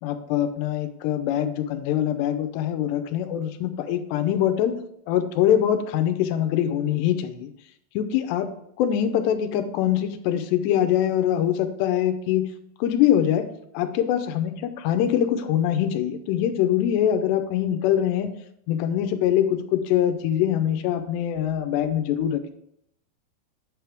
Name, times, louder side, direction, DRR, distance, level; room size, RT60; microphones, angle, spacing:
voice 1, 0.0-4.8 5.1-7.5 8.0-12.5 12.8-18.3 18.7-22.5, left 10 dB, 80° left, 9 dB, 2.8 m, -23 dB
9.1 x 6.4 x 3.4 m, 0.74 s
omnidirectional pair, 5.0 m